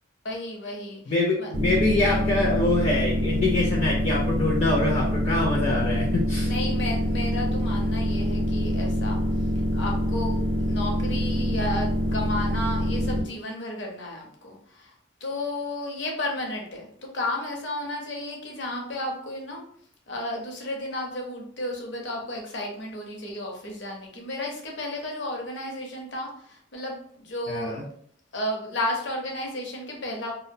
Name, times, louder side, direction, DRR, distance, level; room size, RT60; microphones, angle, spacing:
voice 1, 0.2-1.5 6.4-9.2 9.7-14.9 15.2-19.6 20.1-27.8 28.3-30.3, left 1 dB, 65° left, 0 dB, 0.7 m, -33 dB
voice 2, 1.1-6.5 27.5-27.8, left 2 dB, 35° left, -3 dB, 0.4 m, -25 dB
sound 1, 1.5-13.2, equal, 45° right, 0.5 m, -25 dB
2.5 x 2.0 x 2.6 m, 0.62 s
head